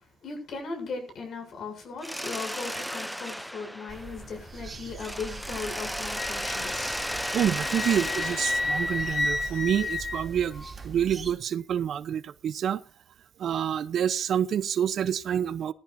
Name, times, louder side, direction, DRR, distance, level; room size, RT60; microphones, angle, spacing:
voice 1, 0.2-7.0, left 4 dB, 65° left, 7.7 m, -38 dB
Mechanisms, 2.0-4.6 5.0-9.8, equal, ahead, 0.6 m, -35 dB
sound 1, 3.9-11.3, right 5 dB, 35° right, 2.9 m, -43 dB
Wind instrument woodwind instrument, 6.1-10.7, left 3 dB, 45° left, 4.2 m, -32 dB
voice 2, 7.3-12.8 13.4-15.7, right 9 dB, 65° right, 0.8 m, -27 dB
18.5 x 14.5 x 2.8 m
cardioid pair, 90°, 0 cm